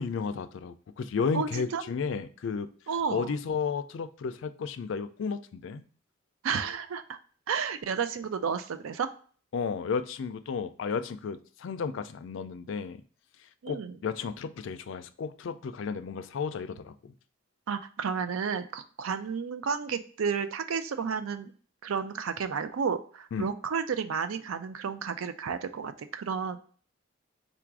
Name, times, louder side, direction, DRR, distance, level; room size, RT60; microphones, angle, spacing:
voice 1, 0.0-2.7 3.1-5.8 9.5-13.0 13.7-17.1 23.3-23.5, left 5 dB, 60° left, 11 dB, 0.3 m, -33 dB
voice 2, 1.3-1.8 2.9-3.3 6.4-7.2 7.5-9.1 13.6-14.0 17.7-21.5 21.8-26.6, right 6 dB, 80° right, 10 dB, 0.4 m, -32 dB
3.9 x 2.5 x 4.5 m, 0.43 s
head